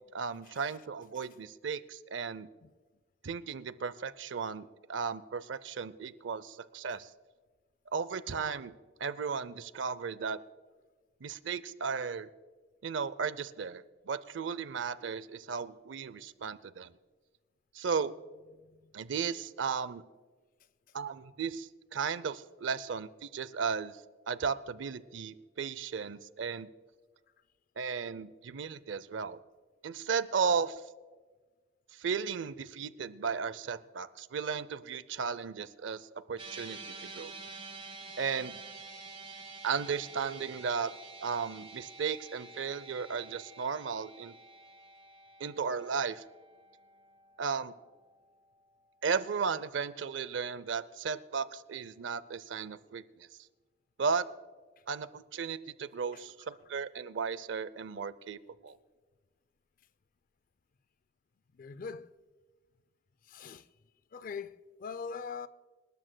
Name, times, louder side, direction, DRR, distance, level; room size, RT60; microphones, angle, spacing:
voice 1, 0.0-2.5 3.2-7.1 7.9-8.7 9.0-10.4 11.2-12.3 12.8-16.9 17.7-18.1 18.9-20.0 20.9-23.9 24.3-26.7 27.8-29.4 29.8-30.8 32.0-37.3 38.2-38.6 39.6-40.9 41.2-44.4 45.4-46.2 47.4-47.7 49.0-53.3 54.0-54.3 54.9-58.8, right 5 dB, 80° right, 0.5 m, -35 dB
sound 1, 36.4-48.8, right 3 dB, 30° right, 1.6 m, -49 dB
voice 2, 61.6-62.1 63.3-63.7 64.1-65.5, left 5 dB, 45° left, 0.4 m, -42 dB
26.5 x 12.5 x 2.2 m
head